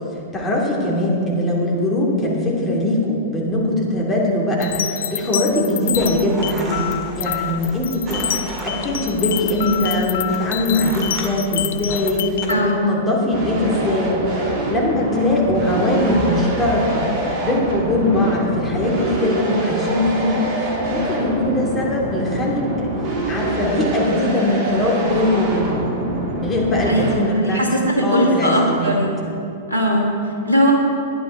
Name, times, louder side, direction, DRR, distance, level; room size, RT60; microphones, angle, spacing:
voice 1, 0.3-6.8 7.1-14.1 14.7-17.0 17.4-22.9 23.3-25.9 26.4-27.6 28.0-29.0, left 1 dB, 20° left, -4 dB, 2.8 m, -21 dB
sound 1, 4.6-12.5, left 11 dB, 60° left, 0.4 m, -27 dB
sound 2, 6.0-12.5, right 1 dB, 25° right, 2.2 m, -34 dB
voice 2, 12.5-13.0 26.8-29.3 29.7-30.7, equal, 90° right, -1 dB, 1.8 m, -19 dB
sound 3, 13.3-27.1, right 1 dB, 45° right, 2.5 m, -25 dB
11.5 x 10.0 x 4.5 m, 2.6 s
figure-of-eight pair, 100°, 0 cm